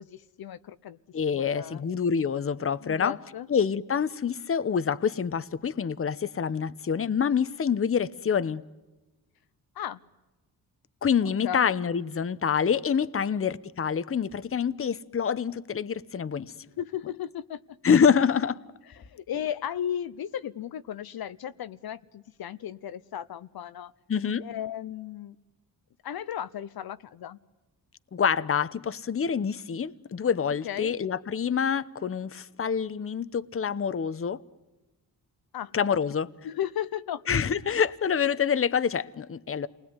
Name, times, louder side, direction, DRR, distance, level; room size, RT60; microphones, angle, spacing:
voice 1, 0.0-1.0 1.3-1.8 2.8-3.5 9.7-10.0 11.2-11.6 13.1-13.2 16.6-17.6 18.9-23.9 24.4-25.4 26.0-27.4 30.4-31.0 35.5-36.0 36.4-37.2, left 10 dB, 75° left, 0.9 m, -35 dB
voice 2, 1.1-3.2 3.5-8.6 11.0-16.5 17.8-18.6 24.1-24.4 28.1-34.4 35.7-36.3 37.3-39.7, left 7 dB, 35° left, 0.9 m, -26 dB
29.5 x 20.0 x 9.8 m
cardioid pair, 105°, 37 cm